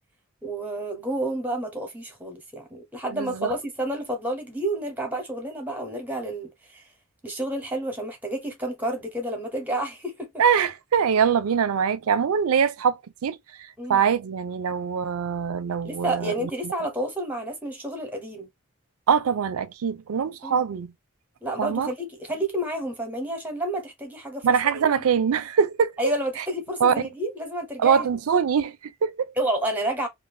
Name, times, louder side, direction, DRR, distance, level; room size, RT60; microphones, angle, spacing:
voice 1, 0.4-6.9 7.2-10.3 13.8-14.0 15.8-18.5 20.4-20.6 21.4-24.5 24.7-24.9 26.0-28.1 29.4-30.1, right 1 dB, 10° right, 0.9 m, -30 dB
voice 2, 3.1-3.5 10.4-13.4 13.9-16.7 19.1-20.9 21.6-21.9 24.4-25.9 26.4-26.5 26.8-26.9 27.8-29.3, right 7 dB, 75° right, 0.4 m, -23 dB
2.5 x 2.5 x 3.2 m
head